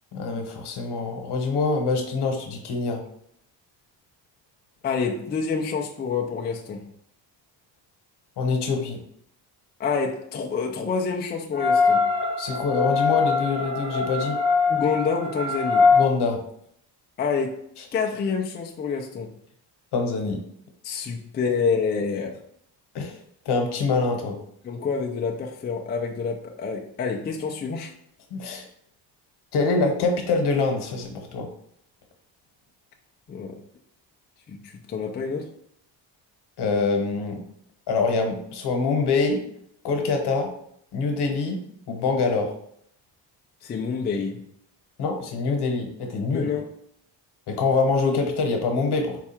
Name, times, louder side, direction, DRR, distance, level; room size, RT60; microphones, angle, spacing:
voice 1, 0.1-3.0 8.4-9.0 12.4-14.4 15.9-16.4 19.9-20.4 22.9-23.2 23.4-24.4 28.3-28.6 29.5-31.5 36.6-37.4 37.9-39.4 39.8-40.5 40.9-41.6 41.9-42.5 45.0-46.5 47.5-49.2, left 4 dB, 65° left, 1.0 m, -24 dB
voice 2, 4.8-6.8 9.8-12.0 14.7-15.9 17.2-17.6 17.9-19.3 20.8-22.4 24.6-27.9 33.3-33.6 34.5-35.5 43.6-44.4 46.3-46.7, left 5 dB, 25° left, 0.3 m, -27 dB
sound 1, 11.5-16.0, left 4 dB, 15° right, 0.9 m, -22 dB
4.5 x 2.4 x 4.2 m
cardioid pair, 160°, 43 cm